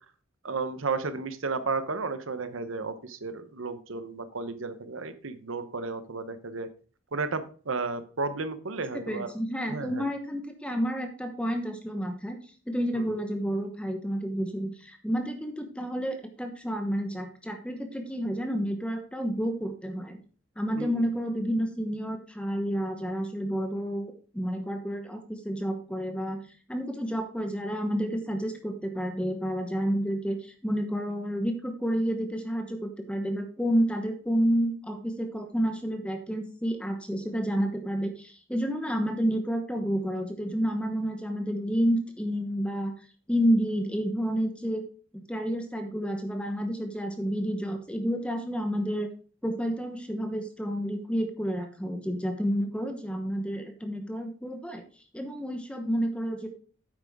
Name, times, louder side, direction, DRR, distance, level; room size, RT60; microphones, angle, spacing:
voice 1, 0.4-6.7 7.1-9.3 9.7-10.0 20.8-20.9, right 4 dB, 75° right, 11 dB, 0.9 m, -33 dB
voice 2, 8.9-20.2 20.6-26.4 26.7-44.8 45.1-49.1 49.4-54.8 55.1-56.5, equal, 5° left, 5 dB, 1.0 m, -30 dB
9.6 x 7.8 x 3.6 m, 0.40 s
head